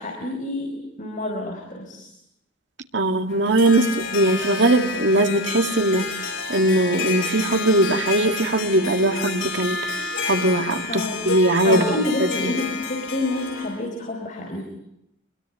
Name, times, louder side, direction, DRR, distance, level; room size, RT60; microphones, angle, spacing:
voice 1, 0.0-2.1 10.9-11.3 11.6-14.6, left 2 dB, 40° left, 2 dB, 4.5 m, -28 dB
voice 2, 2.9-6.1 6.5-9.8 10.3-12.5, right 1 dB, 65° right, 6 dB, 2.2 m, -20 dB
Harp, 3.3-13.8, left 4 dB, 85° left, 6.3 m, -30 dB
26.0 x 22.0 x 9.9 m, 0.82 s
head